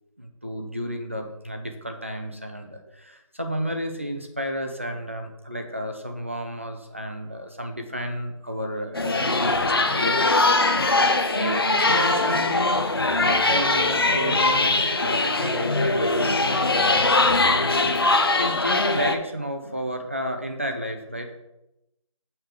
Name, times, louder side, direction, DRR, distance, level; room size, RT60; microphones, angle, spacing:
voice 1, 0.2-10.4 10.9-12.7 13.2-17.8 18.4-21.4, equal, 25° right, 4 dB, 0.5 m, -32 dB
sound 1, 8.9-19.2, left 2 dB, 45° left, 0.6 m, -21 dB
6.7 x 3.3 x 6.0 m, 0.90 s
figure-of-eight pair, 170°, 17 cm